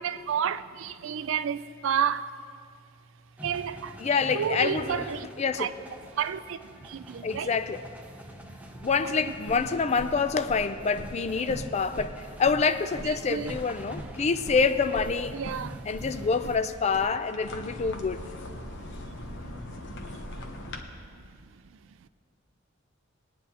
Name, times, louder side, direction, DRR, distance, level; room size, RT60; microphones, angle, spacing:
voice 1, 0.0-2.3 3.4-3.9 4.3-5.3 5.6-5.7 6.2-6.6 6.9-7.6 9.0-9.4 13.0-13.6 15.3-15.8, right 8 dB, 65° right, 0.4 m, -30 dB
sound 1, 3.4-16.6, equal, 5° right, 0.7 m, -45 dB
voice 2, 4.0-5.0 5.4-5.7 7.2-7.8 8.8-15.4 15.9-18.2, left 5 dB, 35° left, 0.4 m, -27 dB
sound 2, 8.6-20.8, left 1 dB, 65° left, 1.0 m, -42 dB
20.5 x 9.4 x 2.9 m
head